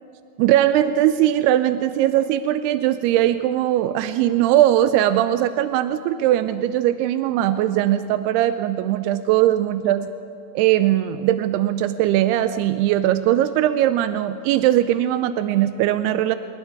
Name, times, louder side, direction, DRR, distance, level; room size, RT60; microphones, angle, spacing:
voice 1, 0.4-10.1 10.6-16.4, right 12 dB, 85° right, 11 dB, 2.3 m, -20 dB
27.5 x 21.0 x 4.7 m, 2.6 s
omnidirectional pair, 5.1 m